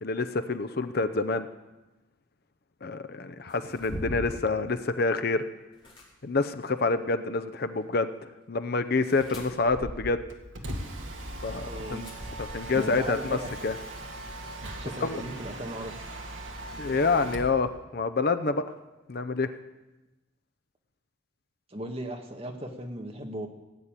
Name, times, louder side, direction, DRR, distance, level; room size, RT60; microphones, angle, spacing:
voice 1, 0.0-1.5 2.8-5.4 6.2-10.2 11.4-12.0 12.5-13.4 13.6-13.8 15.0-15.2 16.8-18.6 19.1-19.5, left 3 dB, 50° left, 11 dB, 0.6 m, -27 dB
sound 1, 3.5-4.5 5.7-6.0 9.0-10.3 12.0-12.9, equal, 25° left, 3.3 m, -40 dB
Mechanisms, 10.3-17.6, right 1 dB, 70° right, 2.0 m, -39 dB
voice 2, 11.6-12.1 12.7-13.5 14.8-16.0 21.7-23.5, right 1 dB, 30° right, 3 dB, 1.6 m, -37 dB
16.5 x 8.5 x 8.9 m, 1.1 s
head